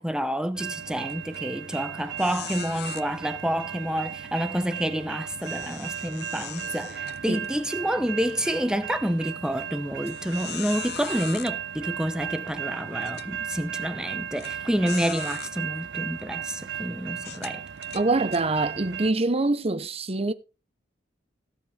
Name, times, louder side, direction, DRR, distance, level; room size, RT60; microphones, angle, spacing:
voice 1, 0.0-17.6, equal, 5° right, 0.7 m, -29 dB
sound 1, 0.5-19.1, right 8 dB, 70° right, 0.5 m, -36 dB
sound 2, 1.1-1.4 1.7-1.8 2.2-3.0 5.4-7.7 8.2-8.3 9.0-9.1 10.0-11.5 12.4-12.5 13.0-13.3 14.4-14.5 14.9-15.5 16.2-16.4 17.2-18.4, left 11 dB, 60° left, 0.7 m, -39 dB
voice 2, 17.9-20.3, right 2 dB, 35° right, 0.9 m, -24 dB
17.5 x 7.7 x 3.4 m
head